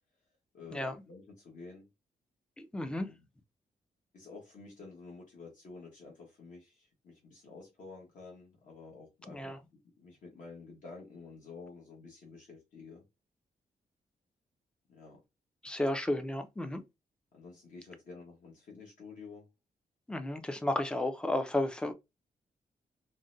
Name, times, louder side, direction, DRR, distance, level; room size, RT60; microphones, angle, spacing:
voice 1, 0.5-1.9 3.0-3.2 4.1-9.4 10.0-13.0 14.9-15.2 17.3-19.5, left 4 dB, 60° left, 1.1 m, -50 dB
voice 2, 2.6-3.1 9.3-9.6 15.6-16.8 20.1-21.9, left 1 dB, 5° left, 0.3 m, -33 dB
3.8 x 2.1 x 2.5 m
wide cardioid pair, 170°, 15 cm